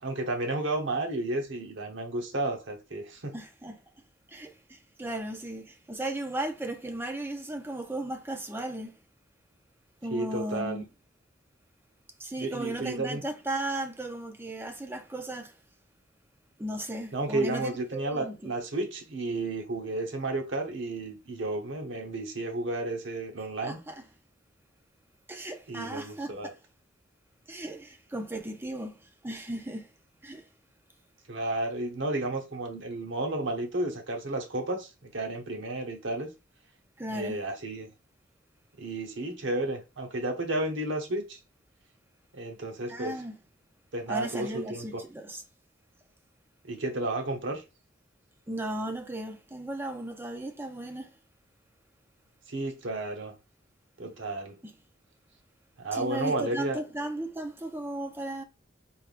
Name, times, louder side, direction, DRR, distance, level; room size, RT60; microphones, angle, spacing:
voice 1, 0.0-3.3 10.1-10.8 12.4-13.2 17.1-23.8 25.7-26.5 31.3-36.3 37.1-37.9 38.8-41.4 42.3-43.1 43.9-45.0 46.6-47.6 52.5-53.3 54.0-54.5 55.8-56.8, right 2 dB, 75° right, 1.1 m, -32 dB
voice 2, 3.3-3.8 4.3-9.0 10.0-10.9 12.2-15.6 16.6-18.5 23.6-24.0 25.3-26.6 27.5-29.9 30.2-30.5 37.0-37.4 42.9-43.4 44.1-45.4 48.5-51.1 54.6-54.7 55.9-58.4, right 1 dB, 10° right, 0.6 m, -36 dB
4.5 x 3.5 x 2.5 m
head